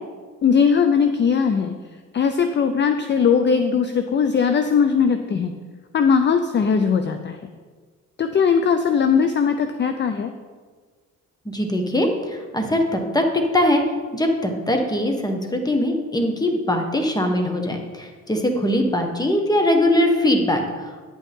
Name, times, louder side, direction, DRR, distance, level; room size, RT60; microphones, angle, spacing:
voice 1, 0.4-1.8 2.1-5.5 5.9-7.4 8.2-10.3, left 6 dB, 35° left, 8 dB, 0.5 m, -19 dB
voice 2, 11.4-13.8 14.1-21.1, left 1 dB, 15° left, 4 dB, 1.4 m, -21 dB
9.8 x 8.3 x 3.7 m, 1.5 s
cardioid pair, 90°, 30 cm